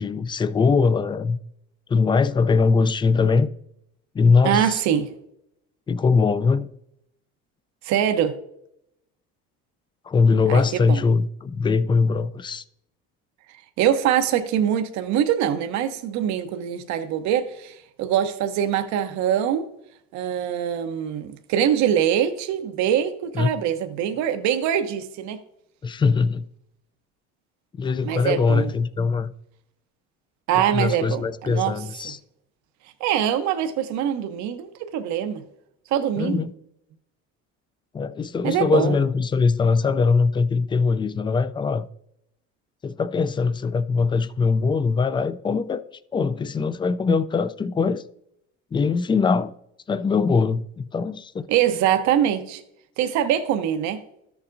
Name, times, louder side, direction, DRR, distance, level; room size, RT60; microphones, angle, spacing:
voice 1, 0.0-1.4 1.9-3.5 4.1-4.8 5.9-6.7 10.1-12.6 23.3-23.5 25.8-26.5 27.8-29.3 30.5-32.2 36.2-36.5 37.9-41.9 42.8-45.8 46.1-48.0 48.7-49.5 49.9-51.5, left 4 dB, 15° left, 0.3 m, -21 dB
voice 2, 4.4-5.1 7.8-8.4 10.5-11.0 13.8-19.7 20.1-25.4 28.0-28.7 30.5-31.7 33.0-35.4 35.9-36.4 38.4-39.0 51.5-52.6 53.0-54.0, right 10 dB, 70° right, 0.8 m, -23 dB
13.0 x 7.0 x 2.6 m
cardioid pair, 125°, 30 cm